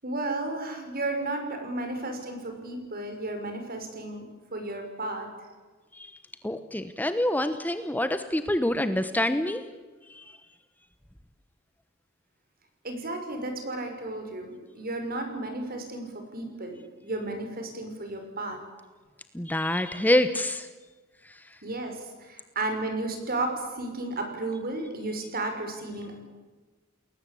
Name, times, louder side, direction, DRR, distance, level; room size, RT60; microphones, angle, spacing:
voice 1, 0.0-4.2 4.5-5.3 12.8-18.6 21.6-26.2, right 2 dB, 45° right, 5 dB, 5.9 m, -33 dB
voice 2, 6.4-9.6 10.1-10.4 19.3-20.7 21.2-21.4, left 1 dB, 10° left, 10 dB, 1.0 m, -26 dB
30.0 x 20.5 x 8.5 m, 1.3 s
head